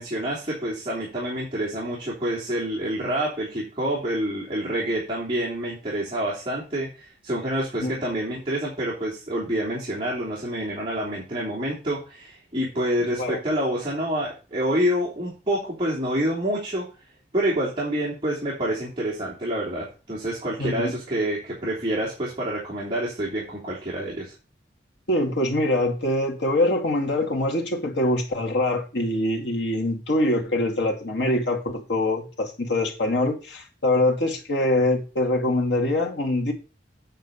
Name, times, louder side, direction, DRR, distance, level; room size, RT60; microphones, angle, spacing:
voice 1, 0.0-16.8 17.3-24.3, right 1 dB, 30° right, 3.1 m, -27 dB
voice 2, 20.6-20.9 25.1-36.5, left 1 dB, 75° left, 2.2 m, -24 dB
9.1 x 4.5 x 6.9 m
head